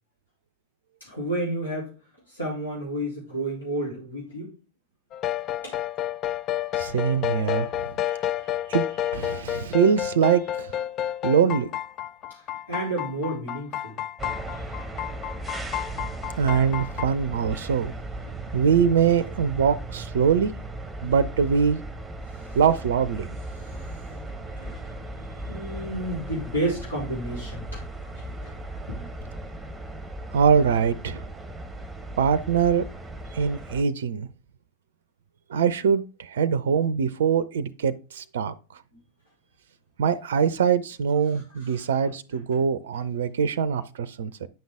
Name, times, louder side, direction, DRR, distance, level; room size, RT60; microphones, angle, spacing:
voice 1, 1.0-1.9 2.3-4.5 5.6-5.8 12.3-14.0 22.2-22.6 23.5-24.8 25.5-27.8 28.1-28.6 28.9-29.1 38.9-39.0 41.3-41.9 42.5-42.6, right 1 dB, 75° left, 3.7 m, -32 dB
sound 1, 5.1-17.1, left 11 dB, 35° left, 0.3 m, -30 dB
voice 2, 6.8-8.3 8.7-8.9 9.1-10.7 11.2-11.7 16.4-17.9 18.4-20.5 21.0-21.8 22.5-23.3 30.3-31.3 32.2-32.8 33.3-34.3 35.5-38.5 40.0-44.5, right 7 dB, 60° right, 0.5 m, -23 dB
sound 2, 14.2-33.8, right 1 dB, 5° right, 1.1 m, -37 dB
9.1 x 5.5 x 3.6 m
figure-of-eight pair, 90°, 0 cm